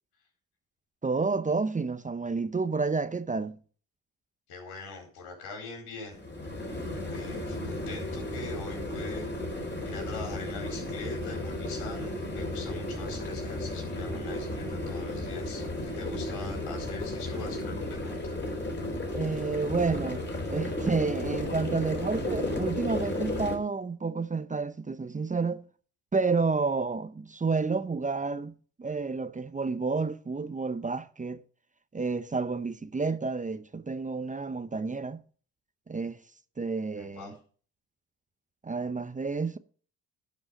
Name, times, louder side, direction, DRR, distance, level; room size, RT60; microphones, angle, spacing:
voice 1, 1.0-3.6 19.1-20.2 20.5-25.6 26.1-28.5 28.8-31.4 31.9-35.2 35.9-36.2 36.6-37.3 38.6-39.6, right 4 dB, 20° right, 0.8 m, -30 dB
voice 2, 4.5-6.2 7.1-9.3 9.8-18.4 18.6-18.7 37.0-37.3, left 3 dB, 80° left, 4.6 m, -43 dB
sound 1, 6.1-23.6, left 1 dB, 30° left, 4.3 m, -34 dB
11.0 x 5.3 x 6.5 m
supercardioid pair, 60°, 37 cm